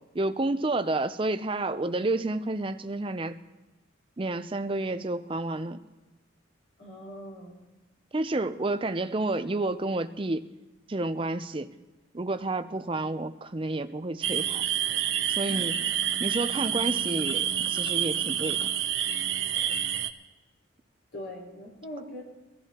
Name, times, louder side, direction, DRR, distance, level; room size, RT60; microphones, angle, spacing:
voice 1, 0.1-3.4 4.2-5.8 8.1-10.5 10.9-11.7 12.1-14.6 15.3-15.7 16.2-18.7, right 2 dB, 25° right, 10 dB, 0.5 m, -30 dB
voice 2, 6.8-7.6 15.5-15.7 21.1-22.2, equal, 75° left, -4 dB, 4.4 m, -41 dB
sound 1, 14.2-20.1, right 10 dB, 65° right, 0.7 m, -28 dB
23.5 x 14.5 x 2.9 m, 1.1 s
head